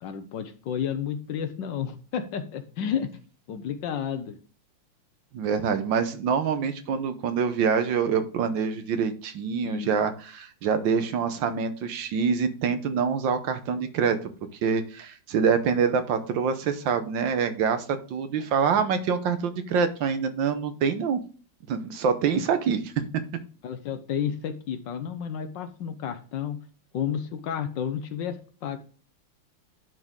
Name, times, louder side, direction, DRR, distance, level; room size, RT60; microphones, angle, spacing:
voice 1, 0.0-3.1 3.5-4.4 9.6-9.9 22.3-22.4 23.6-26.6 26.9-28.8, left 8 dB, 70° left, 9 dB, 1.4 m, -31 dB
voice 2, 5.3-14.3 14.6-21.2 21.7-22.9, right 6 dB, 70° right, 9 dB, 1.5 m, -25 dB
10.5 x 4.5 x 3.7 m, 0.39 s
omnidirectional pair, 2.2 m